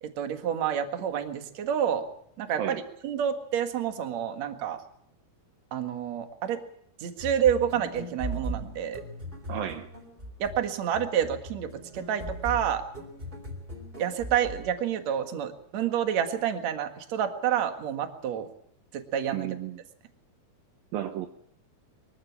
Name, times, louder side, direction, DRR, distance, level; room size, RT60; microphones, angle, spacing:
voice 1, 0.0-2.1 2.4-4.8 5.7-6.6 7.0-9.0 10.4-12.9 14.0-18.5 18.9-19.5, right 9 dB, 50° right, 6 dB, 2.6 m, -29 dB
sound 1, 7.2-14.8, equal, 15° right, 3.7 m, -39 dB
voice 2, 9.5-9.9 19.3-19.8 20.9-21.3, right 11 dB, 75° right, 7 dB, 2.7 m, -33 dB
23.5 x 14.5 x 8.6 m, 0.70 s
omnidirectional pair, 4.4 m